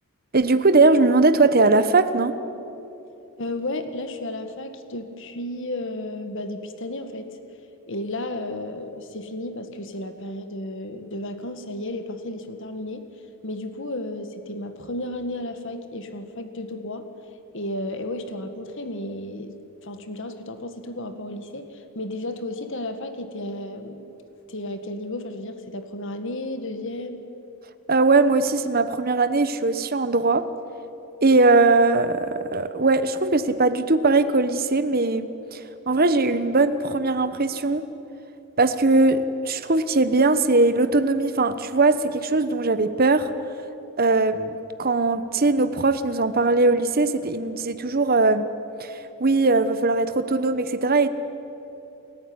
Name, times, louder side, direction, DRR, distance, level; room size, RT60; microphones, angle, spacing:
voice 1, 0.3-2.4 27.9-30.5 31.2-35.6 35.9-37.8 38.6-43.3 44.0-48.5 48.8-48.9 49.2-51.1, right 3 dB, 40° right, 11 dB, 1.1 m, -20 dB
voice 2, 3.4-7.3 7.9-13.1 13.4-17.1 17.5-19.5 19.8-24.1 24.5-27.2, left 1 dB, 60° left, 8 dB, 1.9 m, -33 dB
29.0 x 14.0 x 9.7 m, 3.0 s
head